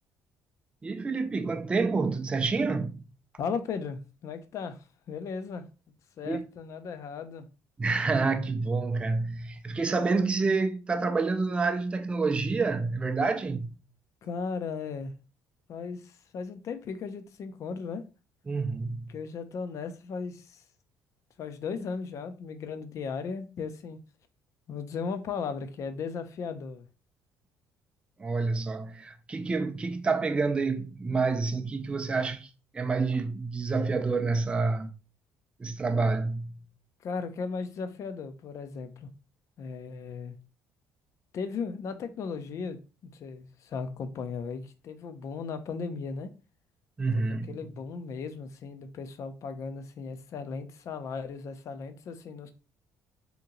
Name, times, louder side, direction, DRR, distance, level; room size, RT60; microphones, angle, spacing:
voice 1, 0.8-3.0 6.3-6.4 7.8-13.8 18.5-19.1 28.2-32.5 32.7-34.9 35.6-36.6 47.0-47.6, right 4 dB, 15° right, 0.4 m, -28 dB
voice 2, 3.4-5.7 6.2-7.5 14.2-15.1 15.7-18.0 19.1-20.6 21.4-24.0 24.7-26.9 37.0-39.1 39.6-40.4 41.3-46.3 47.1-52.5, left 5 dB, 50° left, 0.5 m, -36 dB
2.9 x 2.7 x 3.7 m
cardioid pair, 125°, 7 cm